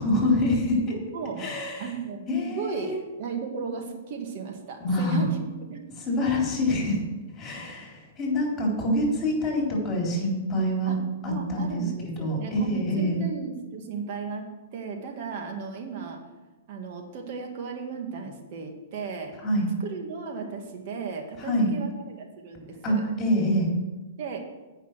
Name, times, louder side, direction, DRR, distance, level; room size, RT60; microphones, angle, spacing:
voice 1, 0.0-1.0 1.4-1.9 2.3-3.0 4.8-5.3 6.1-7.0 7.4-11.0 11.2-13.2 19.4-19.7 21.4-21.7 22.8-23.7, left 1 dB, 20° left, -1 dB, 3.8 m, -26 dB
voice 2, 1.1-1.5 1.8-5.4 5.7-5.9 10.9-11.0 11.3-16.2 16.7-19.3 19.8-23.0 24.2-24.4, right 5 dB, 50° right, 3 dB, 1.9 m, -35 dB
8.6 x 5.6 x 7.5 m, 1.2 s
hypercardioid pair, 130°, 0 cm